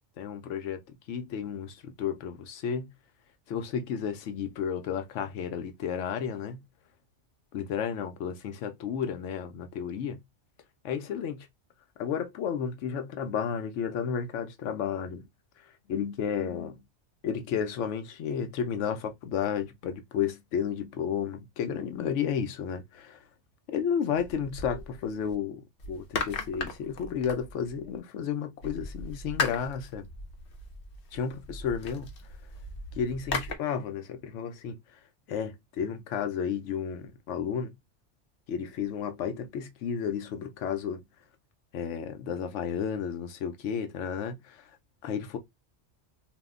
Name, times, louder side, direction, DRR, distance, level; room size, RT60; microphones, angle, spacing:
voice 1, 0.2-2.9 3.5-6.6 7.5-10.2 10.8-11.5 12.0-15.3 15.9-16.8 17.2-23.2 23.7-30.1 31.1-32.1 32.9-34.8 35.3-37.7 38.5-41.0 41.7-44.7 45.0-45.4, left 7 dB, 85° left, 0.9 m, -32 dB
sound 1, 24.2-25.4 25.8-28.0 28.6-33.6, left 4 dB, 60° left, 0.8 m, -37 dB
2.6 x 2.1 x 3.6 m
omnidirectional pair, 1.2 m